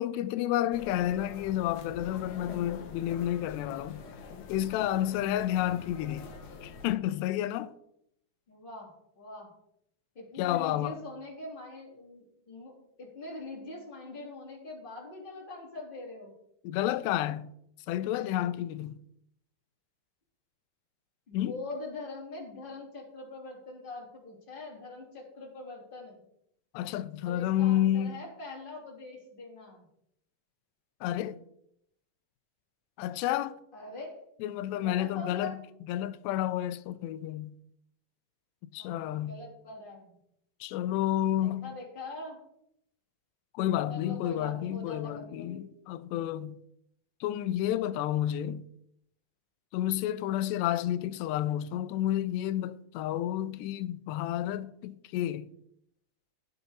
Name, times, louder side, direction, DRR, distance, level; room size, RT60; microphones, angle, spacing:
voice 1, 0.0-4.0 4.5-6.3 6.6-7.7 10.4-11.0 16.6-17.5 17.9-19.0 21.3-21.5 26.7-28.2 31.0-31.4 33.0-33.6 34.4-35.6 35.9-37.5 38.7-39.4 40.6-41.8 43.5-46.6 47.2-48.7 49.7-55.5, left 12 dB, 90° left, 2.8 m, -30 dB
sound 1, 0.7-6.9, left 5 dB, 65° left, 2.1 m, -45 dB
voice 2, 8.5-9.5 10.1-16.3 21.3-26.2 27.2-29.8 33.7-34.2 34.7-35.6 38.8-40.2 41.4-42.4 43.9-45.6 50.1-50.4, left 2 dB, 15° left, 2.9 m, -43 dB
17.0 x 6.9 x 4.1 m
omnidirectional pair, 4.7 m